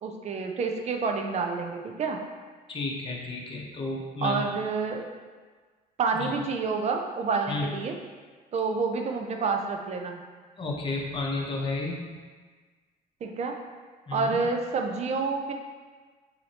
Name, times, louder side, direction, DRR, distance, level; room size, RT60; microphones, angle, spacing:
voice 1, 0.0-2.2 4.2-5.1 6.0-8.0 8.5-10.2 13.2-13.6 14.1-15.5, right 4 dB, 40° right, 3 dB, 0.5 m, -28 dB
voice 2, 2.7-4.4 6.1-6.3 7.5-7.7 10.6-12.2 14.1-14.4, left 2 dB, 30° left, -2 dB, 0.9 m, -32 dB
6.2 x 2.9 x 2.9 m, 1.4 s
cardioid pair, 110°, 17 cm